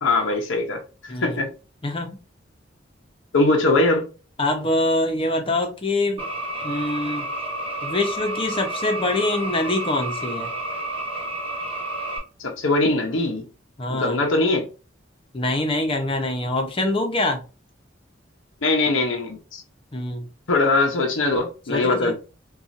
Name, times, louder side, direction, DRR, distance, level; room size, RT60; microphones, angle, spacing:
voice 1, 0.0-1.5 3.3-4.1 12.4-13.4 13.9-14.7 18.6-19.6 20.5-22.1, left 2 dB, 85° left, 0.7 m, -21 dB
voice 2, 1.1-1.4 1.8-2.1 4.4-6.3 6.6-7.3 7.8-10.5 13.8-14.2 15.3-17.4 19.9-20.3 21.7-22.1, left 2 dB, 30° left, 0.7 m, -24 dB
sound 1, 6.2-12.2, right 2 dB, 30° right, 1.2 m, -30 dB
4.1 x 2.4 x 2.5 m
head